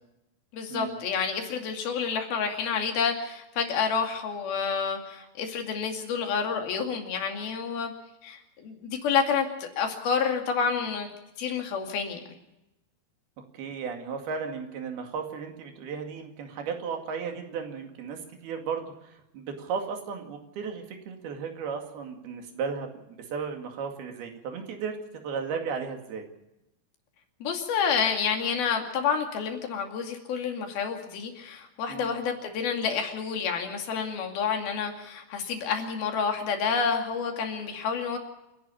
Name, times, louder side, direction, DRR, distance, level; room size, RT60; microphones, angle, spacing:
voice 1, 0.5-7.9 8.2-11.1 11.4-12.2 27.4-38.2, left 6 dB, 80° left, 4 dB, 4.3 m, -29 dB
voice 2, 13.4-26.3 31.9-32.2, right 6 dB, 90° right, 4 dB, 4.2 m, -35 dB
28.0 x 11.0 x 8.5 m, 0.91 s
omnidirectional pair, 4.3 m